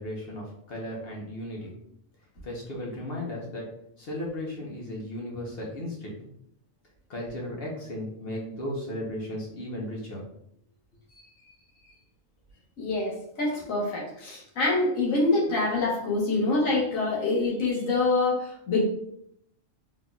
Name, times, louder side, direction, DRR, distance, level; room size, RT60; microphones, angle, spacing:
voice 1, 0.0-1.7 2.4-3.6 4.0-6.1 7.1-10.2, left 1 dB, 50° left, -2 dB, 1.2 m, -35 dB
voice 2, 12.8-18.8, left 2 dB, 85° left, -4 dB, 1.6 m, -26 dB
4.0 x 3.7 x 2.4 m, 0.72 s
omnidirectional pair, 1.3 m